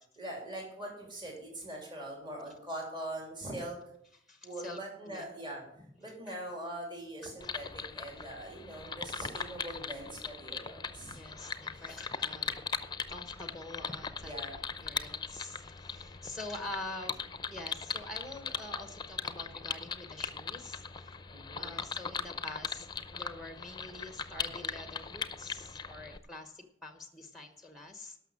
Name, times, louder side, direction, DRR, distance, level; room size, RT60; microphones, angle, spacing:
voice 1, 0.2-3.8 4.4-5.6 6.0-11.2 11.8-11.9 14.2-14.5 21.3-21.8, right 1 dB, 25° right, -1 dB, 3.3 m, -42 dB
voice 2, 4.2-4.8 5.1-5.3 6.0-6.2 7.2-7.3 11.1-12.5 13.1-14.3 14.8-17.2 17.5-21.2 21.6-28.2, left 2 dB, ahead, 7 dB, 1.0 m, -46 dB
sound 1, 7.4-26.2, left 5 dB, 25° left, 0.6 m, -40 dB
12.5 x 6.2 x 7.3 m, 0.69 s
head